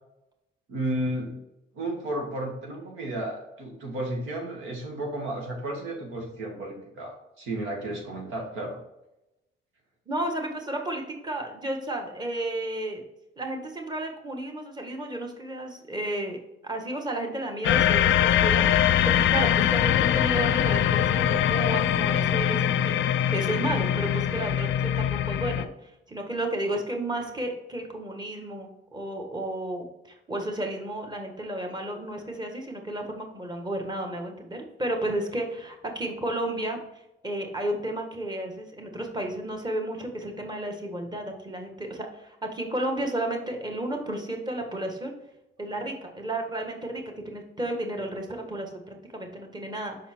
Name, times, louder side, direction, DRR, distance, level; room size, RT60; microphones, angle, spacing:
voice 1, 0.7-1.4 1.7-8.8, right 1 dB, 90° right, 0 dB, 1.7 m, -33 dB
voice 2, 10.1-13.0 13.4-36.8 37.2-45.1 45.6-50.0, right 1 dB, 20° right, 3 dB, 1.5 m, -32 dB
sound 1, 17.6-25.7, left 10 dB, 75° left, 0.4 m, -23 dB
6.0 x 4.3 x 4.4 m, 0.89 s
cardioid pair, 90°, 20 cm